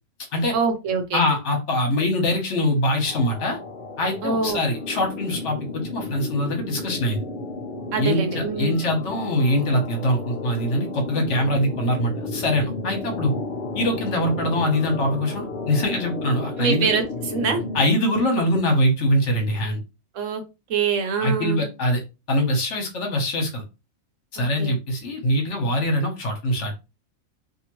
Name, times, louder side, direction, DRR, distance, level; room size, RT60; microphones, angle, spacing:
voice 1, 0.5-1.3 4.2-4.6 7.9-8.8 16.6-17.6 20.1-20.4 20.7-21.7 24.4-24.7, right 5 dB, 75° right, 6 dB, 1.0 m, -24 dB
voice 2, 1.1-3.6 4.0-7.2 8.0-13.3 13.7-16.8 17.7-19.8 21.2-22.0 22.3-23.6 24.3-26.8, left 1 dB, 65° left, 2 dB, 1.2 m, -23 dB
sound 1, 3.0-17.9, left 2 dB, 50° left, 0.7 m, -33 dB
2.8 x 2.5 x 2.9 m, 0.27 s
omnidirectional pair, 1.4 m